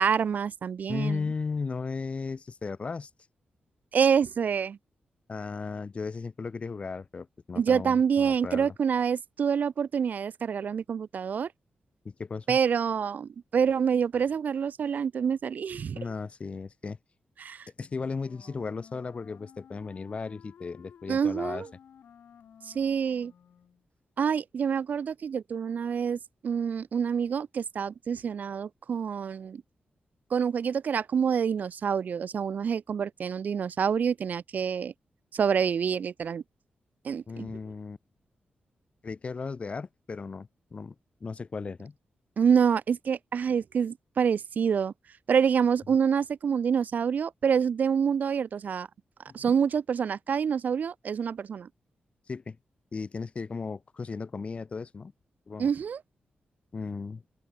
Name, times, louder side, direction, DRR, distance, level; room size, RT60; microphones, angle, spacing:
voice 1, 0.0-1.2 3.9-4.8 7.6-11.5 12.5-16.0 17.4-17.7 21.1-21.7 22.6-23.3 24.2-29.6 30.3-34.9 35.3-36.4 37.0-37.5 42.4-44.9 45.3-48.9 49.3-51.7 55.6-56.0, right 7 dB, 60° right, 0.4 m, -27 dB
voice 2, 0.9-3.1 5.3-8.7 12.0-12.6 15.9-17.0 17.8-21.6 37.3-38.0 39.0-40.9 41.2-41.9 49.3-49.5 52.3-52.6 52.9-55.1 55.5-55.7 56.7-57.2, left 4 dB, 40° left, 6.1 m, -36 dB
Wind instrument woodwind instrument, 17.8-23.8, left 8 dB, 85° left, 5.4 m, -54 dB
open air
wide cardioid pair, 140°, 3 cm